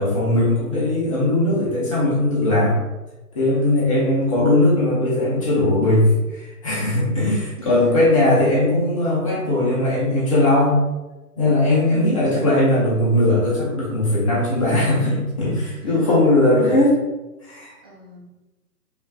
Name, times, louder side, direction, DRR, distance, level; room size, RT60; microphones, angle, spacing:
voice 1, 0.0-2.8 3.3-10.7 11.4-17.0 17.4-17.8, left 1 dB, 20° left, -6 dB, 0.7 m, -19 dB
voice 2, 7.6-8.6 11.8-12.5 15.8-16.3 17.8-18.2, left 1 dB, 15° right, -9 dB, 0.4 m, -44 dB
5.2 x 2.5 x 2.3 m, 1.1 s
figure-of-eight pair, 135°, 47 cm